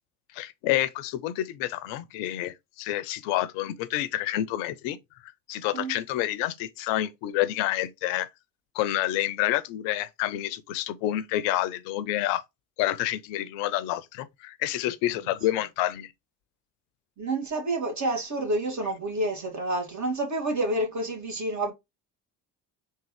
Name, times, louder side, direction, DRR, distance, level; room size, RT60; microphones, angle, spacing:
voice 1, 0.3-5.0 5.2-8.3 8.7-12.4 12.8-16.1, left 14 dB, 65° left, 0.6 m, -28 dB
voice 2, 17.2-21.7, right 1 dB, 35° right, 1.8 m, -29 dB
3.6 x 2.7 x 3.1 m
figure-of-eight pair, 50°, 49 cm